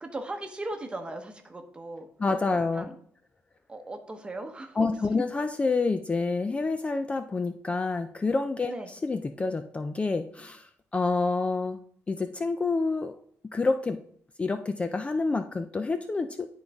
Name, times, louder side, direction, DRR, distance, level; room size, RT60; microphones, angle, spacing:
voice 1, 0.0-2.1 2.7-2.9 3.7-4.8 5.1-5.2 8.7-8.9, right 2 dB, 20° right, 5 dB, 1.0 m, -38 dB
voice 2, 2.2-2.9 4.8-11.8 12.1-13.2 13.5-14.0 14.4-16.5, left 3 dB, 25° left, 8 dB, 0.4 m, -28 dB
11.0 x 4.0 x 3.5 m, 0.62 s
cardioid pair, 115°, 5 cm